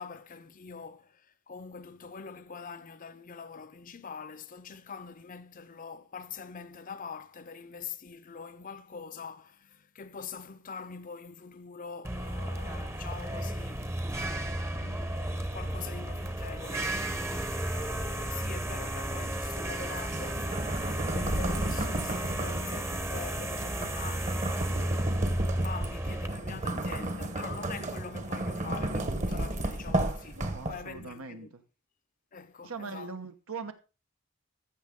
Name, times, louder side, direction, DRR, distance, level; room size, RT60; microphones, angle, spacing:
voice 1, 0.0-14.0 14.7-20.5 21.0-24.5 25.6-31.5 32.3-33.1, left 5 dB, 40° left, 0.6 m, -44 dB
sound 1, 12.0-26.3, right 1 dB, 10° right, 0.8 m, -33 dB
sound 2, 20.0-31.0, right 1 dB, 35° right, 1.0 m, -33 dB
voice 2, 30.3-31.6 32.6-33.7, right 4 dB, 90° right, 1.1 m, -41 dB
14.0 x 6.5 x 3.7 m
head